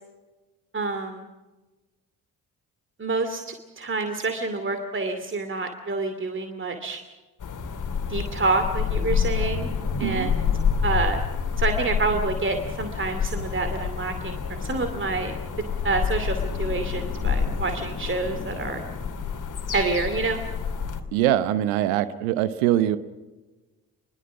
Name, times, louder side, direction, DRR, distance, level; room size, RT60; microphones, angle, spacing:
voice 1, 0.7-1.3 3.0-7.0 8.1-9.7 10.0-10.4 10.8-11.2 11.6-15.4 15.8-18.8 19.7-20.4, right 3 dB, 25° right, 7 dB, 2.5 m, -27 dB
sound 1, 7.4-21.0, left 6 dB, 45° left, 2.8 m, -28 dB
voice 2, 10.0-10.3 21.1-23.0, right 12 dB, 70° right, 15 dB, 1.0 m, -23 dB
26.5 x 22.0 x 6.1 m, 1.2 s
figure-of-eight pair, 40°, 44 cm